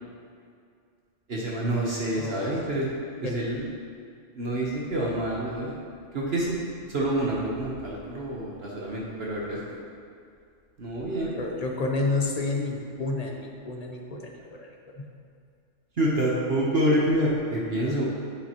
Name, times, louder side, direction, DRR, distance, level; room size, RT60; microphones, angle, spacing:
voice 1, 1.3-2.9 3.2-3.7 4.3-5.8 6.1-9.8 10.8-11.4 16.0-18.0, right 1 dB, 55° right, -4 dB, 1.2 m, -27 dB
voice 2, 2.2-2.7 3.2-3.3 11.4-15.1, left 3 dB, 35° left, 1 dB, 0.9 m, -30 dB
10.0 x 7.5 x 3.0 m, 2.3 s
omnidirectional pair, 1.3 m